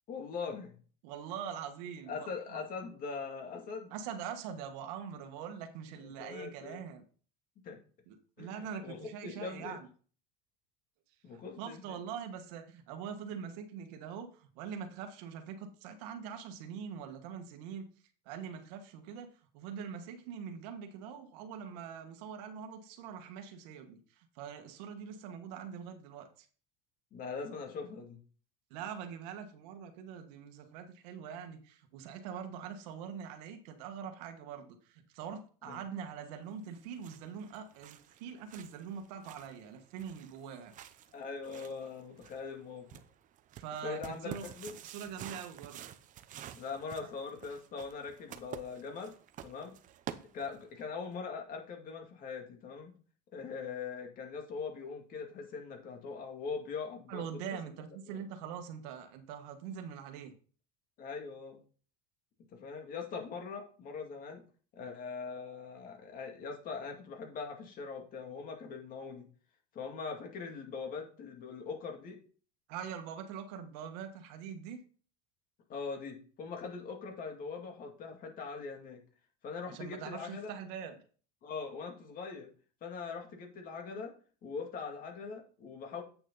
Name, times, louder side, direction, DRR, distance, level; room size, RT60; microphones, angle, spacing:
voice 1, 0.1-0.8 2.1-3.9 6.0-6.8 7.6-7.8 8.4-9.8 11.2-12.0 27.1-28.2 35.6-35.8 41.1-43.0 43.8-44.7 46.5-49.1 49.4-49.7 50.3-52.9 53.3-57.3 58.1-58.2 61.0-61.6 62.5-64.4 64.7-69.3 69.7-72.2 75.7-79.0 79.4-80.5 81.4-82.5 82.8-84.1 84.4-86.0, left 5 dB, 40° left, 2.4 m, -41 dB
voice 2, 1.0-2.6 3.9-7.0 8.1-9.9 11.6-17.9 18.2-26.5 28.7-40.7 43.5-44.5 44.8-45.8 47.0-47.1 57.1-60.3 72.7-74.8 79.7-81.0, right 7 dB, 75° right, 1.6 m, -43 dB
sound 1, 36.6-50.8, right 10 dB, 40° right, 0.7 m, -50 dB
8.6 x 6.3 x 4.0 m
supercardioid pair, 130°, 21 cm